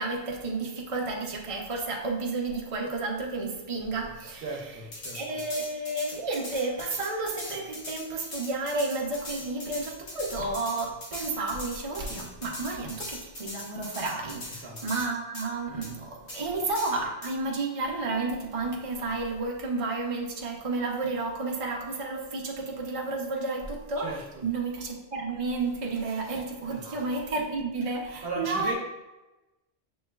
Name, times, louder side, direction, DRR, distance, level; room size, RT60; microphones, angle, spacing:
voice 1, 0.0-4.5 5.1-28.7, right 3 dB, 35° right, -1 dB, 0.6 m, -31 dB
voice 2, 4.4-5.2 14.6-14.8 24.0-24.4 26.7-27.1 28.2-28.7, right 3 dB, 55° right, 0 dB, 1.0 m, -37 dB
sound 1, 4.9-15.1 15.3-15.5 15.8-15.9 16.3-16.4 16.7-17.3, left 1 dB, 65° left, 1.2 m, -40 dB
6.9 x 3.0 x 2.3 m, 1.0 s
omnidirectional pair, 1.2 m